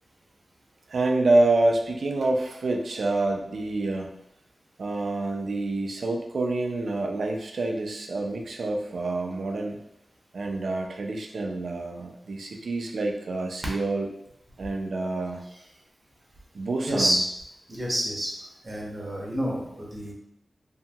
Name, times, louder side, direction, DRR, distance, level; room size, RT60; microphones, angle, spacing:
voice 1, 0.9-4.1 4.8-9.8 10.3-14.1 14.6-15.4 16.5-17.2, right 2 dB, 75° right, 2 dB, 0.4 m, -27 dB
voice 2, 16.9-17.2 17.7-18.3 18.6-20.1, equal, 35° right, -4 dB, 0.8 m, -28 dB
2.7 x 2.7 x 2.3 m, 0.79 s
wide cardioid pair, 90°, 0 cm